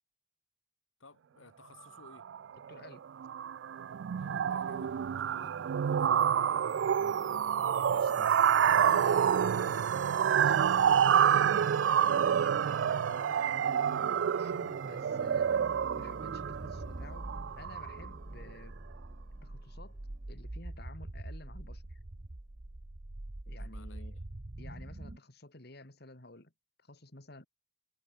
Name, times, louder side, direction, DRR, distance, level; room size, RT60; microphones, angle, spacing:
voice 1, 1.0-2.3 4.2-5.6 5.8-6.4 7.6-8.1 15.0-15.2 23.5-24.2, left 3 dB, 85° left, 2.7 m, -57 dB
sound 1, 2.1-2.4 2.7-2.9 3.2-18.1, right 8 dB, 65° right, 0.3 m, -28 dB
voice 2, 2.7-3.0 7.9-8.3 8.9-15.7 16.0-18.8 19.4-20.0 20.3-22.0 23.5-24.2 24.6-26.5 26.8-27.5, left 2 dB, 55° left, 2.6 m, -52 dB
sound 2, 4.2-12.3, equal, 5° right, 6.9 m, -58 dB
sound 3, 6.2-25.2, right 2 dB, 40° right, 1.0 m, -46 dB
head